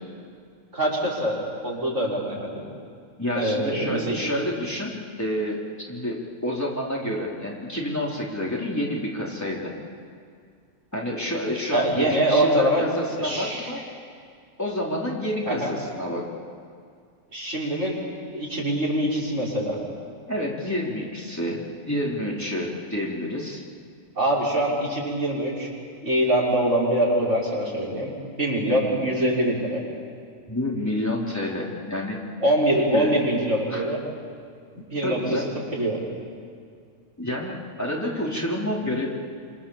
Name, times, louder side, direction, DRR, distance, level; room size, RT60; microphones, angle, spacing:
voice 1, 0.7-2.6 3.3-4.2 11.7-12.8 13.2-13.6 15.5-15.7 17.3-18.0 18.3-19.8 24.2-25.7 26.0-29.8 32.4-34.0 34.9-35.4 35.7-36.0, right 1 dB, 65° right, -4 dB, 6.3 m, -24 dB
voice 2, 3.2-5.6 5.9-9.7 10.9-13.8 14.6-16.3 20.3-23.6 30.5-32.2 32.9-33.1 33.7-33.8 35.0-35.5 37.2-39.1, left 1 dB, 10° left, -4 dB, 4.1 m, -29 dB
27.0 x 26.5 x 7.4 m, 2.2 s
omnidirectional pair, 1.4 m